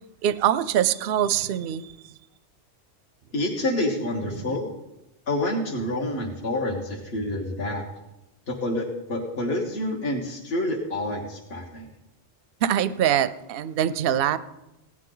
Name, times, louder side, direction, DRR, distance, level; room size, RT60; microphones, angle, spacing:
voice 1, 0.2-1.9 4.3-4.6 12.6-14.4, right 10 dB, 60° right, 14 dB, 0.7 m, -24 dB
voice 2, 3.3-4.7 5.3-7.8 8.5-11.9, left 1 dB, 55° left, -3 dB, 1.8 m, -28 dB
17.0 x 11.0 x 3.9 m, 0.95 s
omnidirectional pair, 1.2 m